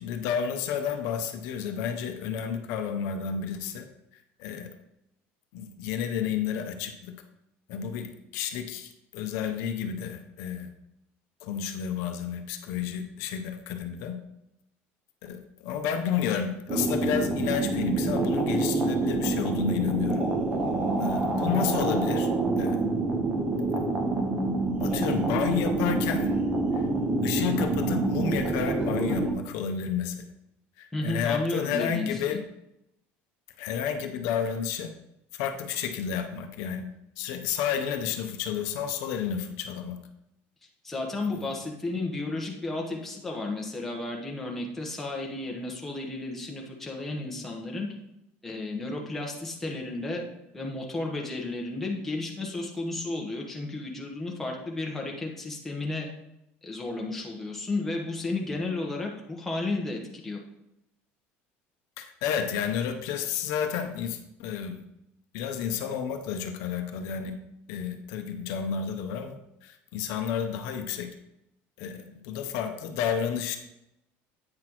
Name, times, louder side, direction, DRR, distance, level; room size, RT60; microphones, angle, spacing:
voice 1, 0.0-3.9 4.1-4.7 5.5-7.1 7.7-10.7 11.4-14.2 15.2-20.2 21.0-22.3 22.6-22.8 24.8-26.3 26.7-26.9 27.2-30.3 30.8-32.4 33.6-34.9 35.3-36.9 37.2-40.0 62.0-64.8 65.3-67.4 67.7-69.4 69.6-71.1 71.8-73.6, left 8 dB, 65° left, 6 dB, 0.7 m, -31 dB
sound 1, 16.7-29.3, right 2 dB, 20° right, 0.9 m, -27 dB
voice 2, 30.9-32.4 40.8-47.9 48.4-50.2 50.5-56.1 56.6-60.4, left 2 dB, 5° left, -1 dB, 1.1 m, -33 dB
8.7 x 5.9 x 3.0 m, 0.84 s
cardioid pair, 165°, 5 cm